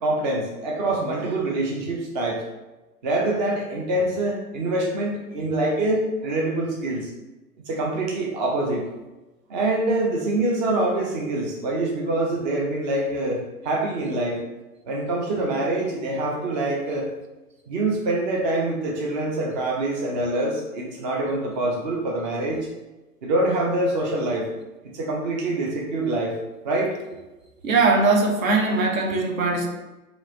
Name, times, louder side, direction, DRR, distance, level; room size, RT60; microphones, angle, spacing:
voice 1, 0.0-2.4 3.0-7.1 7.7-8.9 9.5-14.4 14.9-17.1 17.7-22.7 23.2-24.5 24.8-26.4 26.6-26.9, right 2 dB, 30° right, -2 dB, 0.5 m, -25 dB
voice 2, 27.6-29.7, right 3 dB, 60° right, 1 dB, 0.8 m, -20 dB
2.9 x 2.5 x 3.8 m, 1.1 s
figure-of-eight pair, 110°, 45 cm